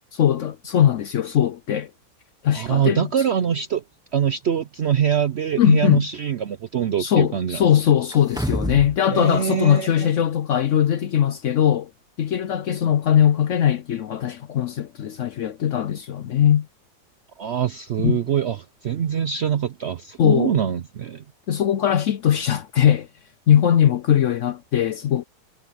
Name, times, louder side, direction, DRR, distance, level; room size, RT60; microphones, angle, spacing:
voice 1, 0.1-1.9 2.4-3.1 5.6-6.0 7.0-11.9 12.2-16.7 18.0-18.2 20.2-20.6 21.5-23.1 23.5-25.2, left 10 dB, 65° left, 0.8 m, -20 dB
voice 2, 2.5-3.8 4.1-7.7 9.1-10.1 17.4-21.2, right 8 dB, 65° right, 0.6 m, -24 dB
sound 1, 8.1-9.0 9.3-9.4, right 1 dB, 5° right, 0.4 m, -27 dB
omnidirectional pair, 1.8 m